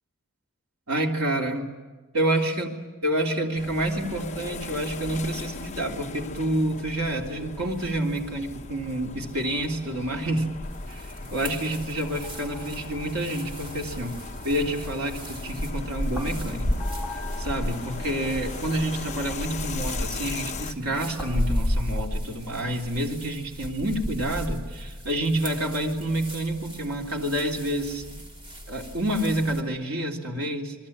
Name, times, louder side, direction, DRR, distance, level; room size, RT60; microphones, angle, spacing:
voice 1, 0.9-1.7 2.1-2.7 3.0-10.5 10.9-14.2 14.4-16.7 17.1-28.0 28.7-30.7, right 1 dB, 85° right, 0 dB, 3.2 m, -28 dB
sound 1, 3.5-20.7, left 3 dB, 30° left, 1.0 m, -38 dB
sound 2, 10.6-29.6, equal, 25° right, 3.0 m, -34 dB
sound 3, 12.2-15.6 16.1-18.6 19.5-19.6 21.2-23.0, left 1 dB, ahead, 2.9 m, -41 dB
28.0 x 21.5 x 8.7 m, 1.3 s
head